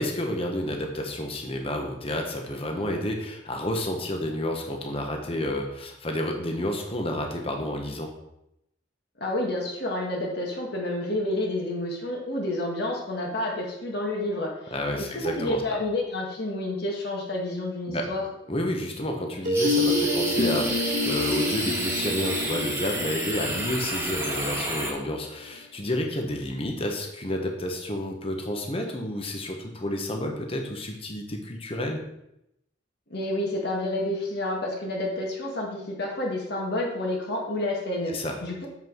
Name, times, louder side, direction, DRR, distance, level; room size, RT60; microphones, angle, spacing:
voice 1, 0.0-8.1 14.7-15.8 17.9-18.1 18.5-32.0 38.1-38.3, left 1 dB, 30° left, 2 dB, 1.3 m, -30 dB
voice 2, 9.2-18.3 33.1-38.1 38.4-38.7, left 1 dB, 60° left, -2 dB, 1.8 m, -29 dB
sound 1, 19.4-25.2, left 1 dB, 45° right, 1.6 m, -28 dB
sound 2, 19.5-24.9, right 1 dB, 15° right, 1.7 m, -30 dB
7.6 x 6.0 x 4.6 m, 0.82 s
head